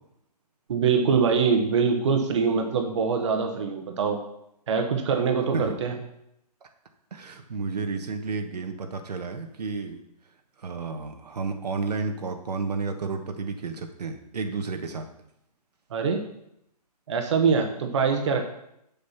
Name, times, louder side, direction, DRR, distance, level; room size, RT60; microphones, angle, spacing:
voice 1, 0.7-4.2 4.7-5.9 15.9-16.2 17.1-18.4, right 5 dB, 45° right, 4 dB, 1.2 m, -23 dB
voice 2, 7.1-10.0 10.6-15.1, right 4 dB, 75° right, 5 dB, 1.3 m, -31 dB
7.0 x 6.6 x 5.7 m, 0.77 s
hypercardioid pair, 160°, 21 cm